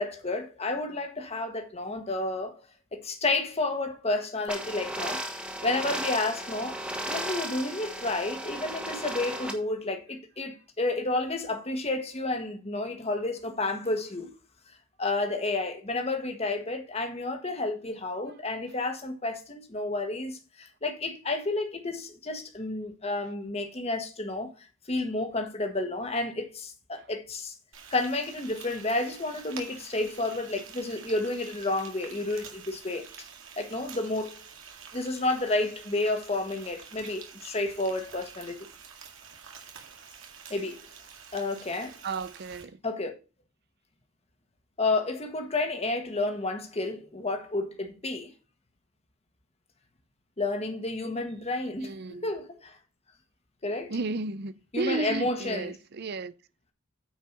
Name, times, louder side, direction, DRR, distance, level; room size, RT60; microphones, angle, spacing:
voice 1, 0.0-2.5 2.9-6.8 7.0-14.3 14.7-27.5 27.9-33.1 33.6-34.4 34.9-38.7 40.5-40.8 41.3-42.0 42.8-43.2 44.8-48.3 50.4-52.0 52.2-52.8 53.6-53.9 54.7-55.7, left 2 dB, 30° left, 1.5 m, -31 dB
sound 1, 4.5-9.5, right 1 dB, 5° right, 1.4 m, -35 dB
Frying (food), 27.7-42.6, right 7 dB, 65° right, 2.1 m, -48 dB
voice 2, 42.0-42.8 51.8-52.3 53.9-56.3, right 3 dB, 50° right, 0.6 m, -34 dB
9.2 x 4.8 x 5.9 m
head